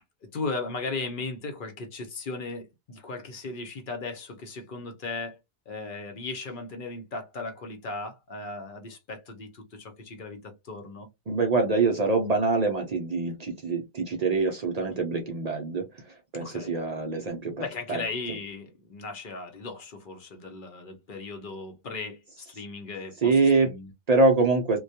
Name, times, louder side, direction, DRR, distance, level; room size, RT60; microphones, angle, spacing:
voice 1, 0.2-5.4 5.7-11.1 13.3-13.4 16.3-16.8 17.6-23.9, left 3 dB, 60° left, 0.8 m, -37 dB
voice 2, 11.3-18.0 23.2-23.7 24.1-24.8, right 3 dB, 50° right, 0.5 m, -25 dB
2.2 x 2.2 x 2.6 m
omnidirectional pair, 1.0 m